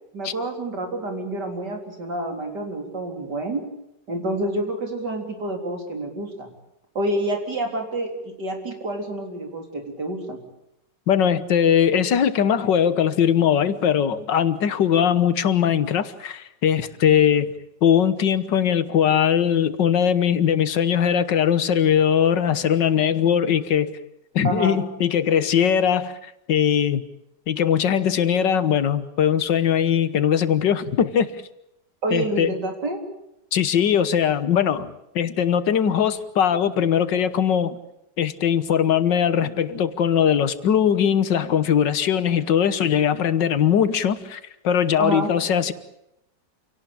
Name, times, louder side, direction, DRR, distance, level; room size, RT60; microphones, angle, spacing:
voice 1, 0.1-3.6 4.1-6.5 6.9-10.4 24.4-24.8 32.0-33.0 45.0-45.3, right 1 dB, 70° right, 4.5 m, -28 dB
voice 2, 11.1-17.5 17.8-23.9 24.4-27.0 27.5-31.3 32.1-32.5 33.5-37.8 38.2-45.7, left 8 dB, 80° left, 1.9 m, -20 dB
28.0 x 18.0 x 8.6 m
omnidirectional pair, 1.9 m